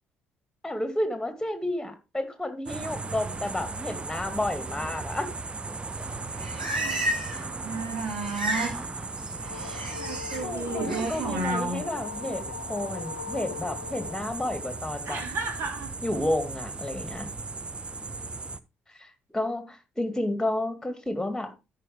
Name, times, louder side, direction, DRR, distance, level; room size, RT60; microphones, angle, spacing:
voice 1, 0.6-5.3 10.3-15.2 16.0-17.3 19.0-19.1 19.3-21.5, left 1 dB, 10° left, 8 dB, 2.3 m, -31 dB
sound 1, 2.7-18.6, right 3 dB, 20° right, 0.6 m, -37 dB
Livestock farm animals working animals, 6.1-7.5 7.7-8.8 9.1-10.4 10.8-11.2, right 1 dB, 90° right, 1.5 m, -33 dB
voice 2, 6.4-7.4 7.6-8.8 9.7-11.9 15.0-15.9, right 3 dB, 55° right, 3 dB, 2.7 m, -33 dB
sound 2, 9.1-15.2, left 7 dB, 85° left, 0.7 m, -41 dB
13.5 x 5.0 x 3.5 m, 0.27 s
figure-of-eight pair, 45°, 5 cm